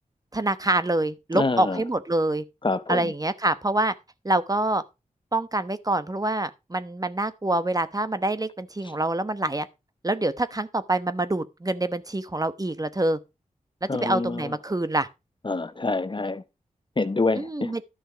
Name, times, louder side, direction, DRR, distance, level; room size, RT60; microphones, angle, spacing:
voice 1, 0.3-2.4 2.9-3.9 4.2-4.8 5.3-9.7 10.0-13.2 13.8-15.1 17.4-17.8, right 2 dB, 25° right, 1.0 m, -26 dB
voice 2, 1.3-1.8 2.6-3.1 13.9-14.5 15.4-16.4 17.0-17.7, left 3 dB, 35° left, 0.9 m, -26 dB
11.5 x 6.3 x 5.0 m
cardioid pair, 55°, 14 cm